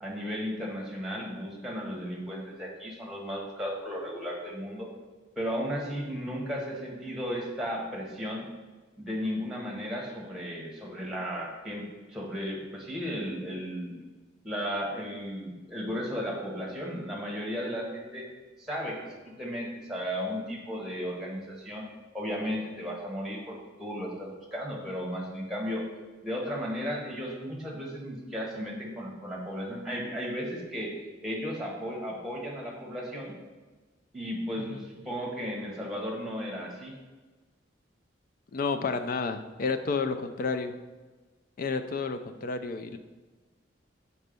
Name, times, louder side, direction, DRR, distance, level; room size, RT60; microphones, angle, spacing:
voice 1, 0.0-4.9 5.4-8.5 9.0-14.0 14.4-18.2 18.6-19.0 19.2-21.9 22.1-25.8 26.2-30.9 31.2-33.3 34.1-36.9, equal, 5° right, -2 dB, 1.1 m, -35 dB
voice 2, 38.5-40.7 41.6-43.0, left 4 dB, 45° left, 8 dB, 0.4 m, -31 dB
4.5 x 4.2 x 5.2 m, 1.3 s
head